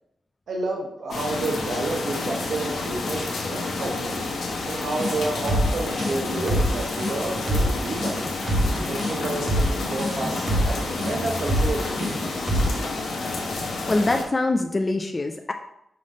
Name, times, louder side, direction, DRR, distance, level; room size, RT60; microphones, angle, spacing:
voice 1, 0.5-4.2 4.6-8.3 8.8-12.5, right 2 dB, 65° right, 0 dB, 0.9 m, -30 dB
sound 1, 1.1-14.2, left 3 dB, 80° left, 1.2 m, -29 dB
sound 2, 5.0-12.8, equal, 35° right, 1.6 m, -25 dB
voice 2, 13.9-15.5, left 2 dB, 25° left, 5 dB, 0.3 m, -23 dB
5.6 x 3.3 x 5.2 m, 0.80 s
wide cardioid pair, 140°, 0 cm